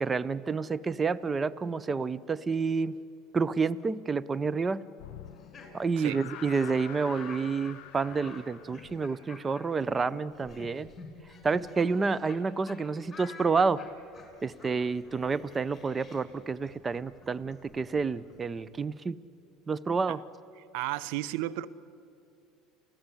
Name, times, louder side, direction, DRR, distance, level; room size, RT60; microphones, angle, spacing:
voice 1, 0.0-2.9 3.3-4.8 5.7-10.9 11.4-13.8 14.4-19.2 19.7-20.2, right 4 dB, 25° right, 17 dB, 0.7 m, -29 dB
sound 1, 5.0-9.4, left 14 dB, 70° left, 0.7 m, -48 dB
Laughter, 5.2-12.4 12.7-12.8 13.1-18.8, left 4 dB, 20° left, 6.6 m, -50 dB
voice 2, 20.6-21.7, right 16 dB, 70° right, 16 dB, 0.7 m, -33 dB
29.5 x 15.5 x 9.9 m, 2.5 s
hypercardioid pair, 85°, 0 cm